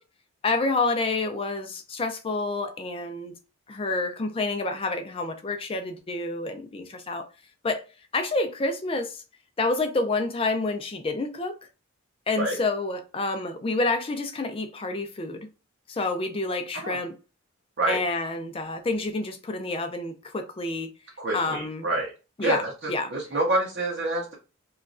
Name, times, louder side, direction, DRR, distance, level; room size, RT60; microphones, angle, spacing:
voice 1, 0.4-3.3 3.7-7.3 7.6-7.8 8.1-9.2 9.6-11.6 12.3-15.5 15.9-17.1 17.9-20.9 21.3-21.9 22.4-22.6 22.9-23.1, left 3 dB, 25° left, 0.4 m, -28 dB
voice 2, 21.2-22.1 22.4-24.3, right 1 dB, 50° right, 0.7 m, -27 dB
3.0 x 2.3 x 2.4 m
head